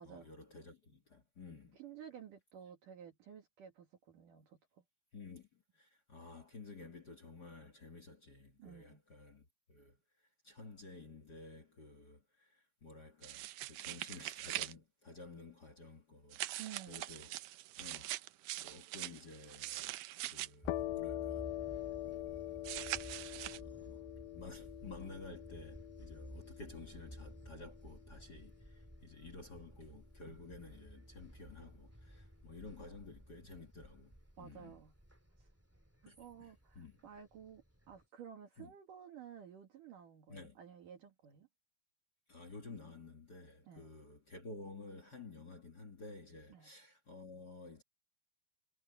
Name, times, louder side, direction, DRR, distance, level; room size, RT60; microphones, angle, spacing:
voice 1, 0.0-1.8 5.1-17.3 17.8-18.2 18.6-20.0 20.3-21.5 22.0-22.7 23.0-23.1 23.6-24.0 24.3-34.7 36.1-37.0 38.6-38.7 40.3-40.6 42.3-47.8, left 3 dB, 40° left, 1.4 m, -53 dB
voice 2, 1.7-4.8 8.6-9.0 16.6-17.0 34.4-34.9 35.4-35.5 36.0-41.5 43.6-43.9 46.5-46.7, right 8 dB, 60° right, 3.3 m, -53 dB
sound 1, 13.2-14.7 16.3-20.5 22.6-23.6, right 16 dB, 85° right, 1.8 m, -43 dB
sound 2, 20.6-38.0, equal, 5° right, 2.0 m, -55 dB
sound 3, 20.7-28.1, left 16 dB, 75° left, 2.4 m, -44 dB
omnidirectional pair, 4.5 m